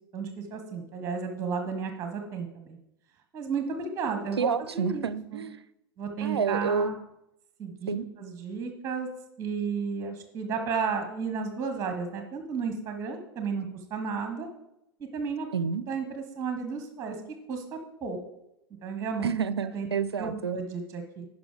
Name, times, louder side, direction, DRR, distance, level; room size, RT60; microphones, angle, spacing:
voice 1, 0.1-2.8 3.3-5.0 5.3-5.4 6.0-7.0 7.6-7.9 8.2-9.1 9.4-14.5 15.0-15.5 15.9-17.2 17.5-18.2 18.8-19.3 19.7-19.9 20.2-21.3, right 5 dB, 20° right, 6 dB, 1.3 m, -33 dB
voice 2, 4.0-5.6 6.2-6.9 7.9-8.1 15.5-15.8 19.2-20.6, right 6 dB, 75° right, 16 dB, 0.5 m, -29 dB
11.0 x 5.3 x 5.0 m, 0.85 s
figure-of-eight pair, 90°, 14 cm